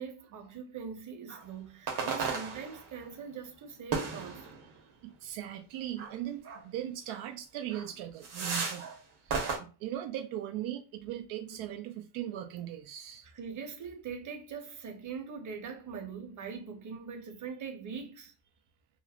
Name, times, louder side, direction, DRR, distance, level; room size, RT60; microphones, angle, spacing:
voice 1, 0.0-4.5 11.5-11.7 13.2-18.3, right 6 dB, 40° right, 0.8 m, -42 dB
sound 1, 1.3-1.4 1.9-3.0 3.9-4.8 6.0-6.1 6.4-6.6 7.1-7.2 7.7-7.9 8.2-9.0 9.3-9.6, right 5 dB, 60° right, 1.1 m, -35 dB
voice 2, 5.0-8.9 9.2-13.3, right 12 dB, 85° right, 0.5 m, -39 dB
3.1 x 2.0 x 2.4 m
cardioid pair, 100°, 47 cm